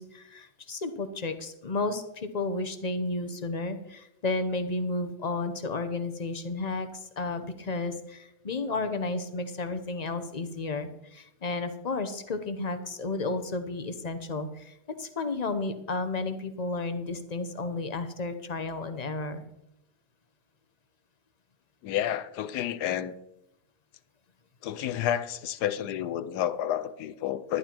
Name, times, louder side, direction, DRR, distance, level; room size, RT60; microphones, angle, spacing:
voice 1, 0.0-19.4, left 3 dB, 35° left, 0.8 m, -32 dB
voice 2, 21.8-23.1 24.6-27.6, left 11 dB, 85° left, 1.3 m, -30 dB
11.5 x 11.0 x 4.5 m
omnidirectional pair, 1.7 m